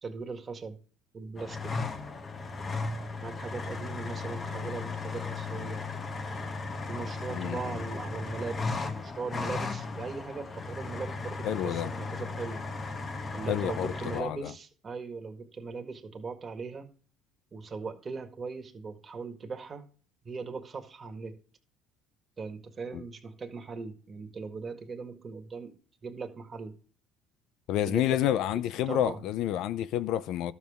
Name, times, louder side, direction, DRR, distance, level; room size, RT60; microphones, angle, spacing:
voice 1, 0.0-0.8 1.1-1.8 3.2-5.8 6.9-12.6 13.3-16.9 17.5-19.8 20.3-21.4 22.4-25.7 26.0-26.8 27.9-28.2 28.5-29.2, right 4 dB, 30° right, 1.8 m, -39 dB
sound 1, 1.4-14.2, left 3 dB, 30° left, 1.3 m, -36 dB
voice 2, 7.3-7.8 11.4-11.9 13.5-14.5 22.9-23.0 27.7-30.5, left 12 dB, 70° left, 0.6 m, -29 dB
12.5 x 7.2 x 3.7 m
supercardioid pair, 100°, 0 cm